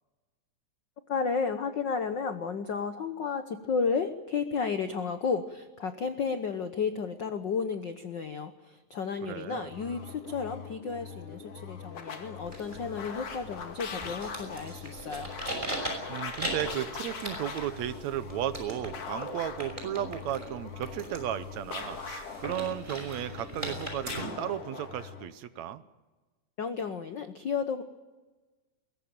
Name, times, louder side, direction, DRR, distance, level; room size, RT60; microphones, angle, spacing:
voice 1, 1.1-15.3 26.6-27.8, left 5 dB, 70° left, 9 dB, 1.0 m, -32 dB
voice 2, 9.2-9.7 16.1-25.8, right 11 dB, 70° right, 13 dB, 2.0 m, -35 dB
sound 1, 9.6-25.3, left 5 dB, 55° left, 3.0 m, -42 dB
sound 2, 12.4-24.2, right 1 dB, 15° right, 5.7 m, -40 dB
22.0 x 18.5 x 9.0 m, 1.2 s
omnidirectional pair, 3.6 m